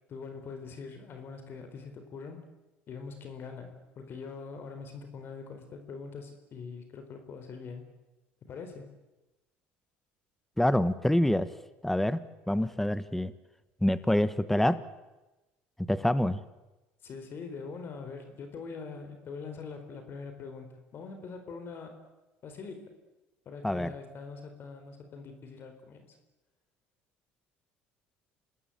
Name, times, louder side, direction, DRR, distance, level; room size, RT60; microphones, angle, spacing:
voice 1, 0.1-2.5 2.9-7.9 8.4-8.9 17.0-22.1 22.4-22.9 23.5-26.2, left 5 dB, 45° left, 7 dB, 4.2 m, -43 dB
voice 2, 10.6-11.5 11.8-12.2 12.5-13.3 13.8-14.8 15.8-16.4 23.6-23.9, left 1 dB, 5° left, 15 dB, 1.2 m, -26 dB
26.5 x 19.0 x 8.7 m, 1.0 s
supercardioid pair, 95°, 5 cm